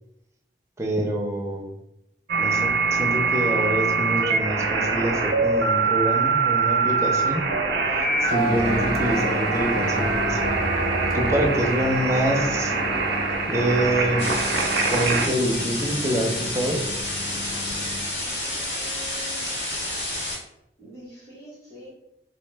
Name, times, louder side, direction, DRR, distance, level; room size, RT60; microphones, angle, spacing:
voice 1, 0.8-1.7 2.3-7.4 8.2-10.6 11.1-12.7 13.5-14.3 14.9-16.8, right 1 dB, 15° right, 1 dB, 0.4 m, -26 dB
sound 1, 2.3-15.3, right 4 dB, 80° right, 0.4 m, -23 dB
sound 2, 8.1-18.1, left 2 dB, 55° left, 0.4 m, -35 dB
sound 3, 14.2-20.4, left 1 dB, 85° left, 0.9 m, -30 dB
voice 2, 18.2-19.6 20.8-21.9, equal, 15° left, -8 dB, 0.9 m, -45 dB
2.6 x 2.1 x 3.2 m, 0.83 s
head